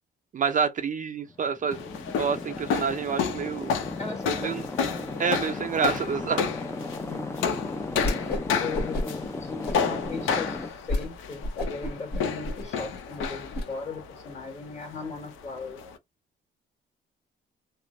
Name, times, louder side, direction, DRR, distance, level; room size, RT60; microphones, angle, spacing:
voice 1, 0.3-1.8 2.2-3.8 4.4-4.6 5.2-6.5, right 6 dB, 40° right, 0.5 m, -28 dB
sound 1, 1.3-10.7, left 3 dB, 15° left, 0.4 m, -36 dB
sound 2, 1.7-16.0, left 6 dB, 85° left, 0.7 m, -32 dB
voice 2, 4.0-5.0 7.1-7.4 8.6-15.8, left 4 dB, 35° left, 1.6 m, -38 dB
Whoosh swoosh swish, 8.0-8.5 8.7-9.3 9.6-10.1 10.5-10.6 10.9-11.1 11.4-13.6, left 2 dB, 55° left, 1.7 m, -30 dB
3.2 x 2.1 x 2.5 m
cardioid pair, 90°, 20 cm